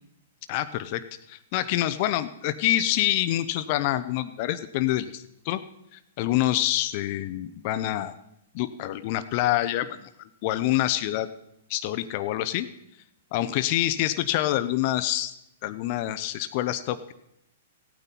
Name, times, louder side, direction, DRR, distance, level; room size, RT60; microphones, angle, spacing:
voice 1, 0.5-5.6 5.9-8.1 8.5-11.3 11.7-12.7 13.3-15.3 15.6-17.1, left 14 dB, 45° left, 12 dB, 0.6 m, -26 dB
15.5 x 9.1 x 4.1 m, 0.78 s
hypercardioid pair, 120°, 0 cm